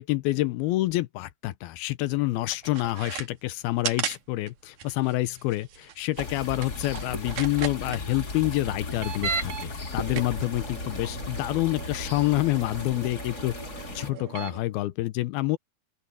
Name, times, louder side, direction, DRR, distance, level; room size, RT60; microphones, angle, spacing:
voice 1, 0.0-13.5 14.0-15.6, left 17 dB, 80° left, 2.6 m, -27 dB
sound 1, 2.5-3.3 3.8-4.2 4.5-4.6 4.8-8.0 8.9-9.7 10.0-14.6, right 7 dB, 60° right, 3.0 m, -36 dB
sound 2, 6.2-14.1, left 3 dB, 30° left, 2.6 m, -36 dB
open air
omnidirectional pair, 4.5 m